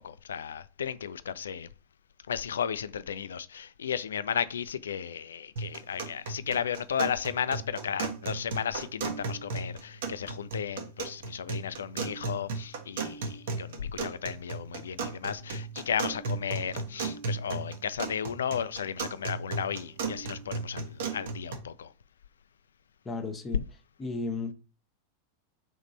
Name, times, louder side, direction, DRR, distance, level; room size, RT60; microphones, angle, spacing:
voice 1, 0.0-1.7 2.3-21.9, left 8 dB, 65° left, 0.3 m, -34 dB
sound 1, 5.6-21.6, right 4 dB, 55° right, 0.9 m, -36 dB
voice 2, 23.0-23.6 24.0-24.5, left 3 dB, 15° left, 0.9 m, -34 dB
3.6 x 3.1 x 4.1 m
figure-of-eight pair, 90°, 0 cm